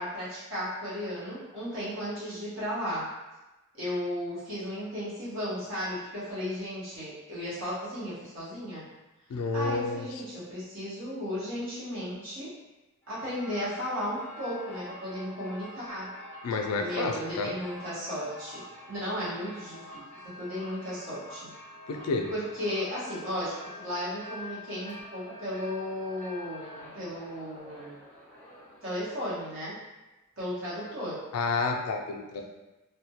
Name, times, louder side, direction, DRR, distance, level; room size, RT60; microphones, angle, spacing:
voice 1, 0.0-3.1 3.7-8.8 9.5-12.5 13.1-16.1 16.8-21.5 22.3-28.0 28.8-29.8 30.4-31.2, equal, 55° right, -10 dB, 0.8 m, -35 dB
voice 2, 9.3-10.1 16.4-17.5 21.9-22.3 31.3-32.4, left 3 dB, 90° left, 3 dB, 0.3 m, -30 dB
sound 1, 13.0-29.5, left 1 dB, 5° left, 0.4 m, -46 dB
2.2 x 2.1 x 2.7 m, 1.1 s
head